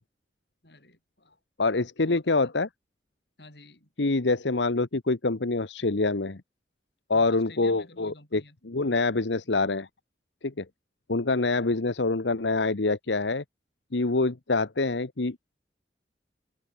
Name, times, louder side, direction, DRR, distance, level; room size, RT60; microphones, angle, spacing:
voice 1, 0.6-1.4 1.8-2.5 3.4-3.9 7.1-8.6, left 3 dB, 65° left, 7.8 m, -51 dB
voice 2, 1.6-2.7 4.0-6.4 7.1-9.9 10.4-10.6 11.1-13.4 13.9-15.4, left 3 dB, 85° left, 1.1 m, -26 dB
head